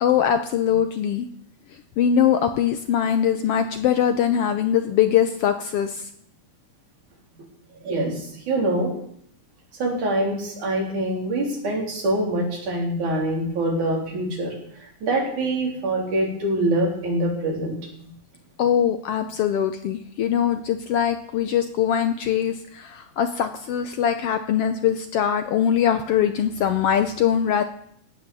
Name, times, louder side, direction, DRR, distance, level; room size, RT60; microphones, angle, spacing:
voice 1, 0.0-1.3 2.0-6.0 18.6-27.6, left 9 dB, 75° left, 9 dB, 1.4 m, -22 dB
voice 2, 7.8-8.9 9.8-14.6 15.0-18.1, right 1 dB, 85° right, -1 dB, 5.2 m, -24 dB
16.5 x 9.4 x 7.0 m, 0.66 s
omnidirectional pair, 3.4 m